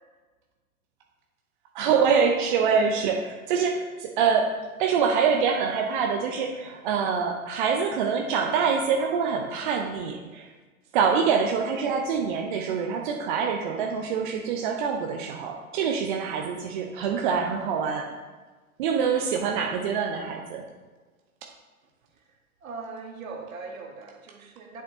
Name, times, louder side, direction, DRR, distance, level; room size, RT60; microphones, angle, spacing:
voice 1, 1.7-10.5 10.9-18.0 18.8-20.6, right 6 dB, 35° right, 2 dB, 0.6 m, -25 dB
voice 2, 22.6-24.8, right 4 dB, 60° right, 2 dB, 1.6 m, -40 dB
8.1 x 7.4 x 2.8 m, 1.3 s
figure-of-eight pair, 110°, 45 cm